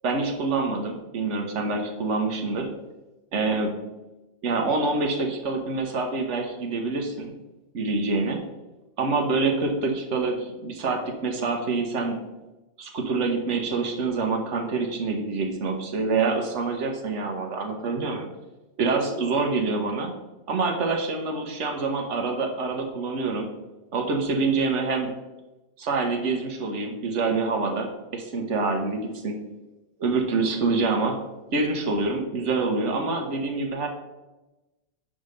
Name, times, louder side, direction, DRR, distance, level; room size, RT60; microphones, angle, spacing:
voice 1, 0.0-2.7 3.3-3.7 4.4-7.1 7.7-8.4 9.0-12.2 12.8-18.3 18.8-20.1 20.5-23.5 23.9-25.1 25.8-29.4 30.0-31.2 31.5-33.9, right 3 dB, 90° right, 3 dB, 1.3 m, -26 dB
5.4 x 5.0 x 6.5 m, 1.1 s
omnidirectional pair, 1.2 m